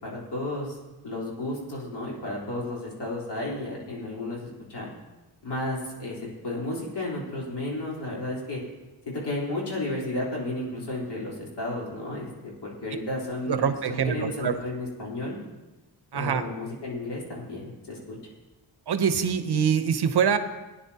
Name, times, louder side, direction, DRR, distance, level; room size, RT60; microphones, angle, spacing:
voice 1, 0.0-0.8 1.0-4.9 5.4-6.2 6.4-8.6 9.1-15.4 16.1-18.2, left 2 dB, 75° left, -4 dB, 3.9 m, -33 dB
voice 2, 13.5-14.6 16.1-16.4 18.9-20.4, right 7 dB, 70° right, 9 dB, 0.9 m, -24 dB
19.0 x 9.9 x 2.9 m, 1.1 s
wide cardioid pair, 135°, 41 cm